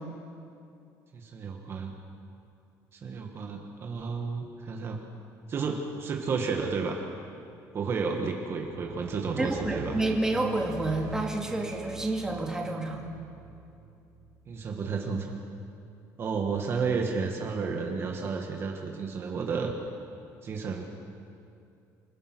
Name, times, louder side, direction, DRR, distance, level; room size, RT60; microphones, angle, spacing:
voice 1, 1.1-2.0 2.9-5.0 5.5-7.0 7.7-10.0 14.5-15.4 16.2-19.8 20.4-20.9, right 5 dB, 35° right, 2 dB, 1.7 m, -32 dB
sound 1, 8.3-14.8, right 5 dB, 55° right, 6.4 m, -45 dB
voice 2, 9.4-13.1, right 2 dB, 10° right, 0 dB, 2.1 m, -29 dB
27.5 x 16.0 x 6.2 m, 2.6 s
cardioid pair, 150°, 7 cm